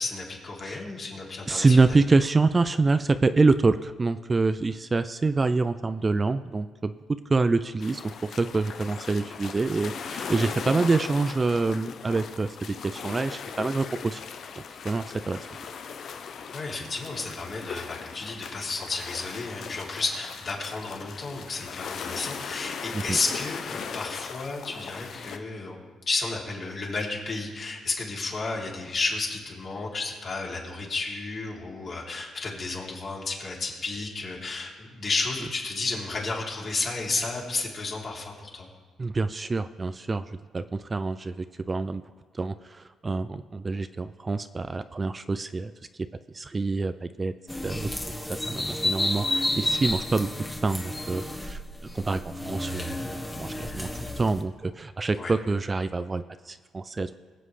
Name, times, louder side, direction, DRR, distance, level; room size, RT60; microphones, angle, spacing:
voice 1, 0.0-1.8 16.5-25.8 26.1-38.7 55.1-55.3, left 3 dB, 45° left, -3 dB, 3.0 m, -32 dB
voice 2, 1.5-12.5 12.8-14.2 14.8-15.5 22.9-23.2 39.0-40.3 40.5-42.0 42.3-45.7 46.3-47.3 47.6-47.9 48.2-50.3 50.6-51.6 51.9-57.1, right 3 dB, 25° right, 12 dB, 0.4 m, -26 dB
sound 1, 7.8-25.4, left 6 dB, 60° left, 0.7 m, -38 dB
sound 2, 47.5-54.4, left 1 dB, 15° left, 1.3 m, -31 dB
22.0 x 7.7 x 3.3 m, 1.5 s
cardioid pair, 90°, 0 cm